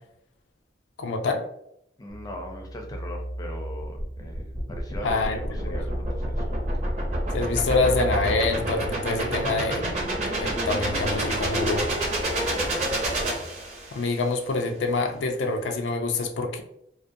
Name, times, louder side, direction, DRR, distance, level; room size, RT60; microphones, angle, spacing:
voice 1, 1.0-1.5 5.0-5.4 5.6-5.8 7.3-10.1 10.4-11.9 13.9-16.6, left 3 dB, 90° left, 4 dB, 0.4 m, -26 dB
voice 2, 2.0-6.7 12.5-13.0, left 1 dB, 20° left, 1 dB, 0.4 m, -40 dB
sound 1, 2.1-13.5, right 1 dB, 70° right, 0.4 m, -40 dB
sound 2, 3.8-14.1, right 1 dB, 40° right, 0.7 m, -28 dB
2.4 x 2.1 x 2.6 m, 0.75 s
head